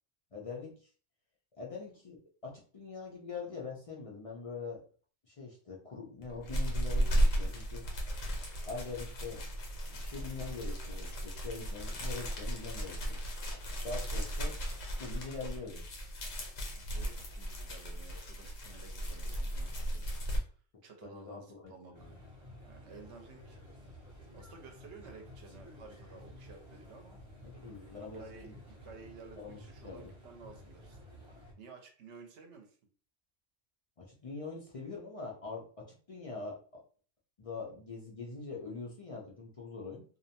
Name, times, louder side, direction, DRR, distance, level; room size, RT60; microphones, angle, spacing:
voice 1, 0.3-0.9 1.6-4.8 5.3-7.8 8.7-9.4 9.9-13.2 13.5-14.6 15.0-15.8 21.0-22.2 27.4-28.6 29.4-30.1 34.0-36.8 37.4-40.0, left 4 dB, 60° left, -2 dB, 0.3 m, -43 dB
sound 1, 6.2-20.4, right 1 dB, 85° left, 1.1 m, -35 dB
voice 2, 16.7-20.1 20.3-20.5 20.8-22.1 22.6-27.2 27.7-32.8, right 4 dB, 70° right, 4 dB, 0.9 m, -54 dB
sound 2, 21.9-31.5, left 1 dB, 30° right, 0.6 m, -53 dB
2.6 x 2.1 x 2.7 m, 0.41 s
omnidirectional pair, 1.3 m